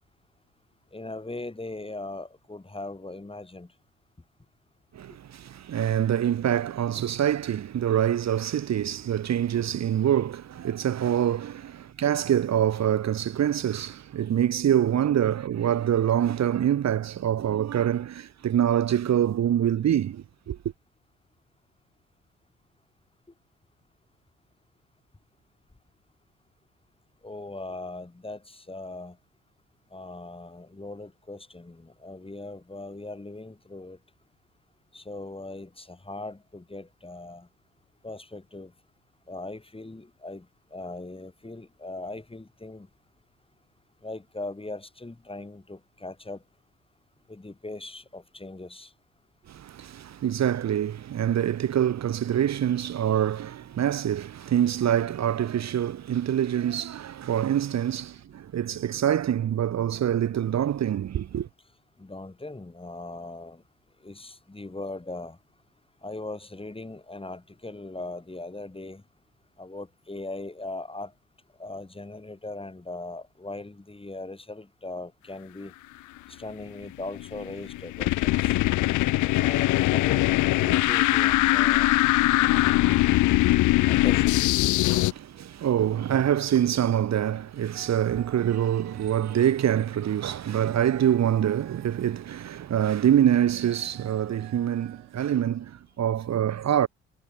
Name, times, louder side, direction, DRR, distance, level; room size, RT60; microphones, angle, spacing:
voice 1, 0.9-3.7 27.2-29.2 29.9-34.0 34.9-37.5 38.0-38.7 39.3-40.5 40.7-42.9 44.0-46.4 47.3-48.9 62.0-63.6 64.0-65.4 66.0-69.0 69.6-71.1 71.6-75.7 76.3-78.6 79.3-80.2 80.6-81.9 83.9-84.4, left 2 dB, 15° left, 3.9 m, -39 dB
voice 2, 4.9-20.6 49.5-61.5 84.9-96.9, right 10 dB, 55° right, 1.5 m, -25 dB
sound 1, 77.0-85.1, left 18 dB, 65° left, 0.6 m, -22 dB
sound 2, 87.7-95.3, right 40 dB or more, 85° right, 2.8 m, -50 dB
hypercardioid pair, 50°, 32 cm